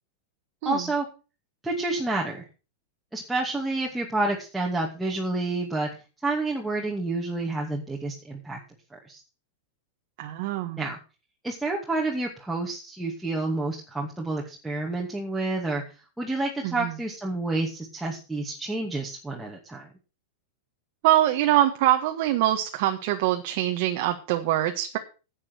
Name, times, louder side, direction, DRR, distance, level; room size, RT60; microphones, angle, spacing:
voice 1, 0.6-1.1 1.6-2.4 3.1-5.9 6.2-8.6 8.9-9.2 10.7-11.0 11.4-15.8 16.2-19.9, right 2 dB, 5° right, -2 dB, 2.5 m, -29 dB
voice 2, 10.2-10.8 16.6-16.9 21.0-25.0, right 13 dB, 60° right, 4 dB, 1.5 m, -24 dB
10.5 x 8.8 x 6.2 m, 0.33 s
hypercardioid pair, 120°, 0 cm